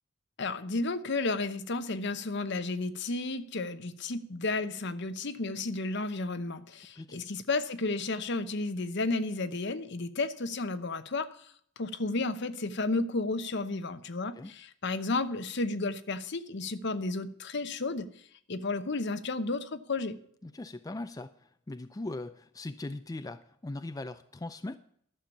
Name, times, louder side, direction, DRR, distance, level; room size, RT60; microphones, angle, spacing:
voice 1, 0.4-18.1 18.5-20.2, left 3 dB, 60° left, 11 dB, 0.9 m, -32 dB
voice 2, 20.4-24.8, left 2 dB, 20° left, 10 dB, 0.4 m, -40 dB
12.0 x 7.0 x 7.1 m, 0.63 s
head